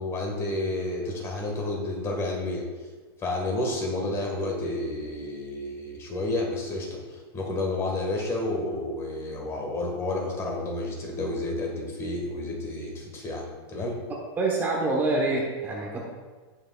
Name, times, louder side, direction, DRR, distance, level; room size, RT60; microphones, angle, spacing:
voice 1, 0.0-2.6 3.2-14.0, left 2 dB, 20° left, 1 dB, 1.6 m, -30 dB
voice 2, 14.4-16.1, right 2 dB, 15° right, -1 dB, 1.0 m, -26 dB
17.0 x 6.0 x 2.3 m, 1.4 s
supercardioid pair, 160°, 13 cm